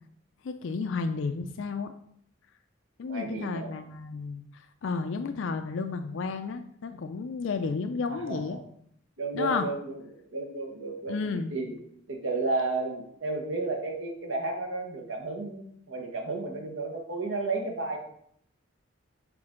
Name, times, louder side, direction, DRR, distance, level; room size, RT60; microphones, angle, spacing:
voice 1, 0.4-1.9 3.0-8.6 9.3-9.7 11.1-11.5, left 4 dB, 70° left, 8 dB, 0.4 m, -32 dB
voice 2, 3.1-3.7 8.1-8.6 9.2-11.7 12.1-18.0, right 3 dB, 80° right, 2 dB, 1.2 m, -33 dB
6.0 x 4.3 x 3.7 m, 0.68 s
head